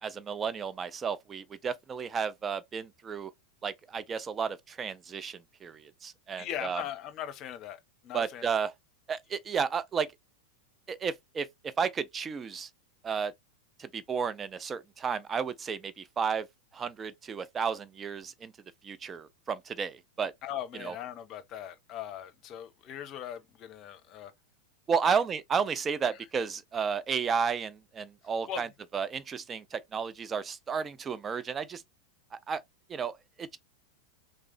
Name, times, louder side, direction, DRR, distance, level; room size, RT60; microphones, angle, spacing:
voice 1, 0.0-3.3 3.6-6.8 8.1-8.7 9.1-10.1 10.9-11.5 11.8-12.7 13.0-13.3 13.8-16.5 16.7-18.5 18.8-20.3 20.8-20.9 24.9-28.7 28.9-31.8 32.3-32.6 32.9-33.6, right 6 dB, 20° right, 0.4 m, -32 dB
voice 2, 6.4-8.4 20.4-24.3 25.0-25.2 28.5-28.6, left 10 dB, 35° left, 0.9 m, -39 dB
3.7 x 3.3 x 3.4 m
figure-of-eight pair, 90°, 0 cm